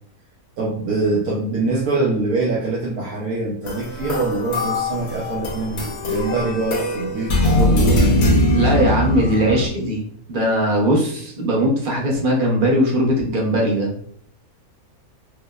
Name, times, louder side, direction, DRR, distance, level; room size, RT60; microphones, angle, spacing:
voice 1, 0.6-8.0, right 3 dB, 75° right, -3 dB, 1.1 m, -24 dB
sound 1, 3.7-9.7, left 1 dB, 85° left, 1.4 m, -21 dB
voice 2, 8.5-10.0 10.3-13.9, right 1 dB, 45° right, -1 dB, 0.8 m, -19 dB
4.8 x 2.1 x 2.3 m, 0.64 s
omnidirectional pair, 1.6 m